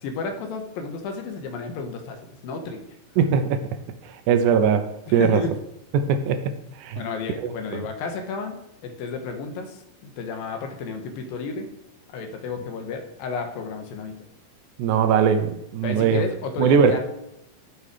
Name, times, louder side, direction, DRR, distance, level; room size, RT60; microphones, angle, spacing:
voice 1, 0.0-2.9 5.1-5.5 7.0-8.6 8.8-11.7 12.1-14.2 15.8-17.0, left 4 dB, 75° left, 5 dB, 2.8 m, -32 dB
voice 2, 3.2-3.6 4.3-4.9 5.1-5.4 5.9-6.4 6.8-7.0 7.4-7.8 14.8-16.3 16.6-17.0, right 7 dB, 75° right, 8 dB, 1.9 m, -20 dB
12.5 x 5.6 x 4.9 m, 0.80 s
omnidirectional pair, 4.4 m